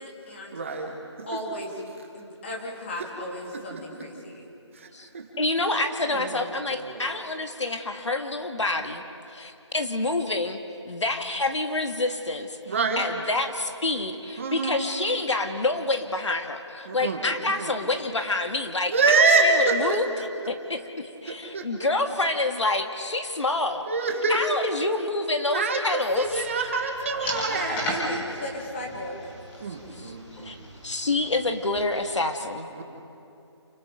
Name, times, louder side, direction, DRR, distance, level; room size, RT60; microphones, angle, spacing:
voice 1, 0.0-0.6 1.3-1.8 2.1-4.5 27.5-29.2, left 1 dB, 25° left, -1 dB, 3.0 m, -35 dB
voice 2, 0.5-1.3 4.7-5.5 6.1-7.1 12.7-13.1 14.4-14.8 16.9-17.8 18.9-20.2 21.3-21.7 23.9-24.6 25.5-27.8 29.6-30.6 32.7-32.8, right 3 dB, 25° right, 2 dB, 1.7 m, -26 dB
voice 3, 5.4-9.0 9.3-10.6 10.8-20.1 20.5-23.8 24.3-26.4 29.9-30.6 30.8-32.8, left 2 dB, 80° left, 5 dB, 2.0 m, -27 dB
sound 1, 26.1-31.8, equal, 10° left, 1.9 m, -37 dB
28.5 x 20.0 x 5.1 m, 2.6 s
figure-of-eight pair, 170°, 15 cm